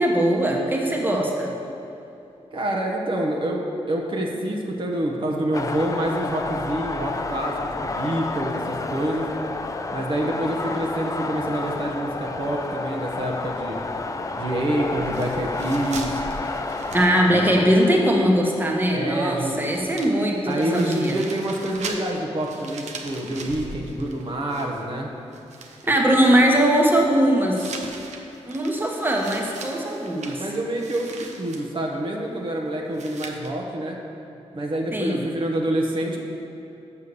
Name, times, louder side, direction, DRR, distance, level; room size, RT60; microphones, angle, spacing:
voice 1, 0.0-1.5 16.9-21.1 25.8-27.8 28.5-30.4 34.9-35.2, right 1 dB, 15° right, 0 dB, 1.2 m, -20 dB
voice 2, 2.5-9.3 9.9-13.8 14.4-16.1 17.2-17.6 18.9-19.6 20.5-25.1 30.4-34.0 34.5-36.2, right 1 dB, 45° right, -1 dB, 1.0 m, -27 dB
sound 1, 5.5-20.4, left 3 dB, 30° left, 0.5 m, -31 dB
sound 2, 15.1-17.7 18.0-18.1 19.3-19.4 19.6-25.0 25.3-26.0 27.5-31.7 32.9-33.5, right 3 dB, 85° right, 0.8 m, -39 dB
6.9 x 5.6 x 6.8 m, 2.8 s
cardioid pair, 75°, 12 cm